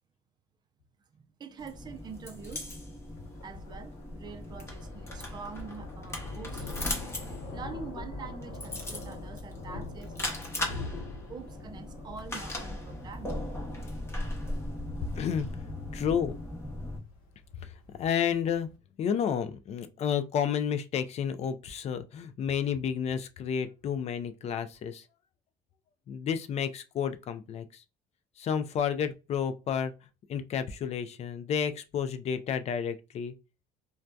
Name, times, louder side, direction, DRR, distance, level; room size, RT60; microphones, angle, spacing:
voice 1, 1.1-2.7 3.4-7.1 7.4-10.9 11.3-13.5, right 5 dB, 25° right, 0.4 m, -45 dB
sound 1, 1.6-17.0, left 1 dB, 15° left, 0.8 m, -38 dB
Thunder, 1.8-18.7, left 3 dB, 65° left, 0.8 m, -45 dB
voice 2, 15.1-15.5 15.9-16.4 17.6-17.7 18.0-18.7 19.0-25.0 26.1-27.8 28.4-29.9 30.3-33.3, left 8 dB, 40° left, 0.4 m, -31 dB
2.6 x 2.3 x 2.2 m
cardioid pair, 120°, 16 cm